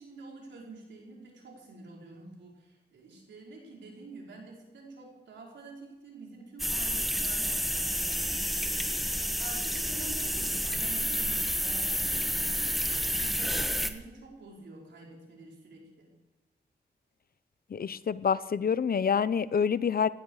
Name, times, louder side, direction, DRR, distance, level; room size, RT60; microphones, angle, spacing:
voice 1, 0.0-9.1 9.4-16.1, right 3 dB, 90° right, -2 dB, 5.2 m, -48 dB
sound 1, 6.6-13.9, equal, ahead, 1.5 m, -30 dB
voice 2, 17.7-20.1, left 6 dB, 55° left, 17 dB, 0.7 m, -27 dB
18.5 x 15.0 x 4.9 m, 1.2 s
cardioid pair, 70°, 18 cm